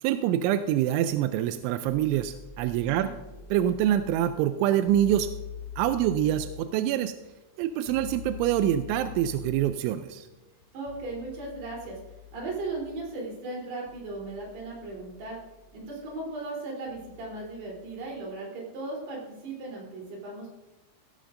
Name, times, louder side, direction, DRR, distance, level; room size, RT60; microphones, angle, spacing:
voice 1, 0.0-3.1 3.5-5.3 5.8-7.1 7.6-10.3, right 11 dB, 85° right, 10 dB, 2.7 m, -25 dB
sound 1, 1.0-18.3, left 7 dB, 85° left, 1.7 m, -46 dB
voice 2, 10.7-12.0 12.3-15.4 15.7-20.5, right 2 dB, 55° right, -3 dB, 5.2 m, -37 dB
15.5 x 13.5 x 2.5 m, 1.0 s
omnidirectional pair, 5.7 m